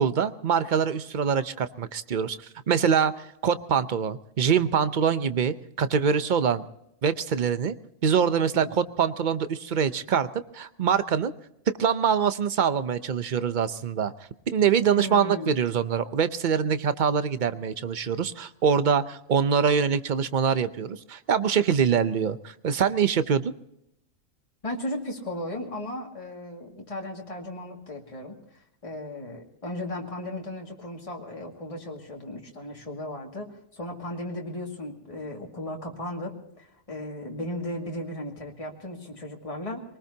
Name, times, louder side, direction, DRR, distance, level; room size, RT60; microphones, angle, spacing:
voice 1, 0.0-6.7 7.0-7.7 8.0-10.3 10.5-11.3 11.7-14.1 14.5-23.5, right 7 dB, 45° right, 12 dB, 0.8 m, -24 dB
voice 2, 8.5-8.9 15.0-15.6 24.6-39.8, left 1 dB, 25° left, -1 dB, 2.3 m, -36 dB
23.5 x 19.5 x 2.8 m, 0.79 s
omnidirectional pair, 1.3 m